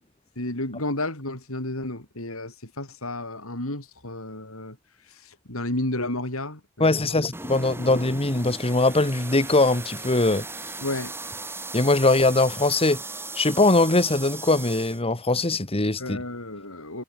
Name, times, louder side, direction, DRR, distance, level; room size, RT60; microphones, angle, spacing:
voice 1, 0.4-4.8 5.1-7.3 7.8-8.0 10.8-11.2 16.0-17.0, left 1 dB, 75° left, 7.5 m, -32 dB
voice 2, 6.8-10.5 11.7-13.0 13.4-16.2, left 2 dB, 25° left, 1.9 m, -21 dB
sound 1, 7.3-15.0, right 3 dB, 10° right, 2.6 m, -37 dB
head